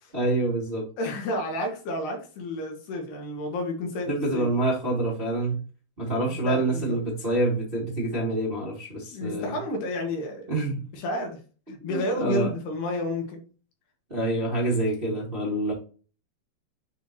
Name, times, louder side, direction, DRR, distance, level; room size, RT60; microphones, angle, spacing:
voice 1, 0.1-0.9 4.0-5.6 6.0-9.6 10.5-10.8 11.8-12.5 14.1-15.7, right 2 dB, 20° right, -5 dB, 1.4 m, -26 dB
voice 2, 1.0-4.5 6.3-7.0 9.1-10.5 10.9-11.4 11.7-13.4, left 1 dB, 70° left, 1 dB, 3.7 m, -31 dB
9.4 x 4.0 x 3.0 m, 0.37 s
omnidirectional pair, 4.9 m